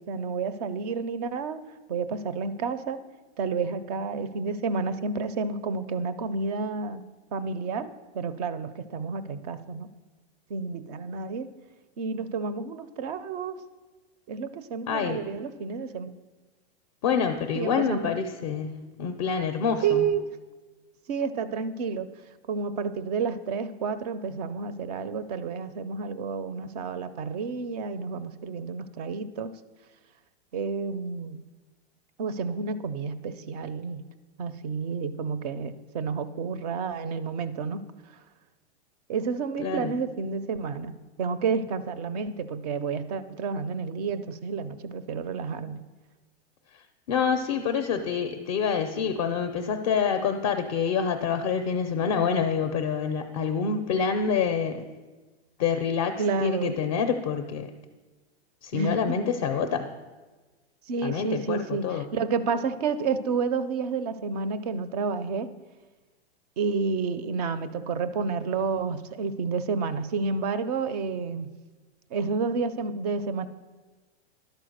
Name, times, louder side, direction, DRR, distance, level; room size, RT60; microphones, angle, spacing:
voice 1, 0.0-1.6 1.9-3.0 3.4-7.0 7.3-9.9 10.5-11.5 12.0-13.6 14.3-16.1 17.5-18.1 19.8-20.3 21.1-22.1 22.5-29.5 30.5-31.4 32.2-34.0 34.4-37.8 39.1-45.8 56.2-56.7 58.7-59.2 59.5-59.7 60.9-65.5 66.6-71.5 72.1-73.5, right 5 dB, 40° right, 14 dB, 0.4 m, -30 dB
voice 2, 14.9-15.2 17.0-20.1 39.6-39.9 47.1-54.9 55.6-57.7 58.6-59.9 61.0-62.1, left 6 dB, 30° left, 6 dB, 0.4 m, -27 dB
11.5 x 4.5 x 6.4 m, 1.3 s
supercardioid pair, 155°, 33 cm